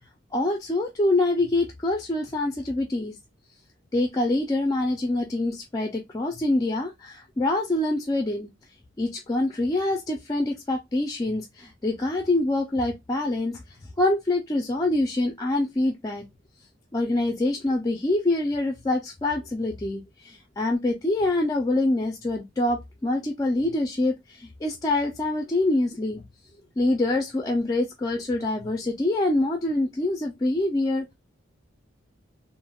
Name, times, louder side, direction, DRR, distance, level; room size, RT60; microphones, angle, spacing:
voice 1, 0.3-3.1 3.9-8.5 9.0-13.6 14.0-16.2 16.9-26.2 26.8-31.1, left 2 dB, 20° left, 0.4 m, -25 dB
3.3 x 2.0 x 2.2 m
head